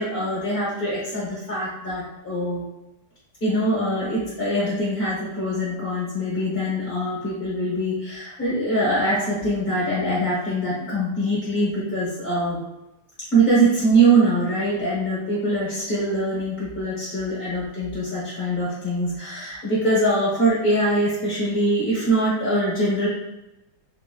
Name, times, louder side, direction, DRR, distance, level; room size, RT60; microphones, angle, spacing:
voice 1, 0.0-2.6 3.4-12.6 13.3-23.1, right 1 dB, 45° left, -8 dB, 0.7 m, -23 dB
3.1 x 2.9 x 2.3 m, 0.94 s
omnidirectional pair, 2.3 m